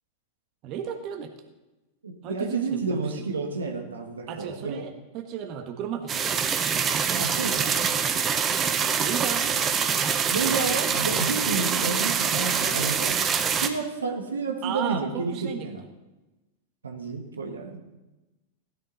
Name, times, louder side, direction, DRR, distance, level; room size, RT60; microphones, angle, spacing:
voice 1, 0.6-1.5 2.2-3.2 4.3-6.3 9.0-9.7 14.6-15.7, right 8 dB, 45° right, 5 dB, 1.4 m, -34 dB
voice 2, 2.0-4.8 7.2-7.8 10.3-13.2 13.5-15.8 16.8-17.8, right 4 dB, 85° right, 3 dB, 1.6 m, -30 dB
sound 1, 6.1-13.7, right 7 dB, 25° right, 1.1 m, -25 dB
16.0 x 11.0 x 4.1 m, 1.1 s
hypercardioid pair, 100°, 0 cm